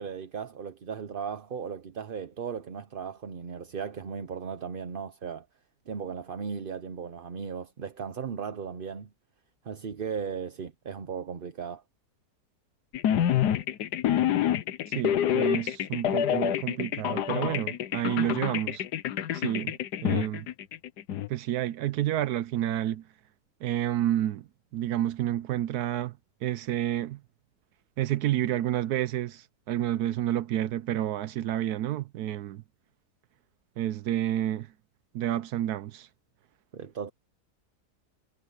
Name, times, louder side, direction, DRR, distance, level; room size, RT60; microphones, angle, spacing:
voice 1, 0.0-5.5 5.9-9.1 9.6-11.8 36.7-37.1, right 6 dB, 45° right, 0.8 m, -36 dB
sound 1, 12.9-21.3, left 10 dB, 85° left, 1.4 m, -27 dB
voice 2, 14.9-18.8 19.3-19.8 20.0-20.5 21.3-23.0 23.6-24.5 24.7-27.2 28.0-32.6 33.8-34.7 35.1-36.1, right 12 dB, 75° right, 1.1 m, -29 dB
omnidirectional pair, 1.7 m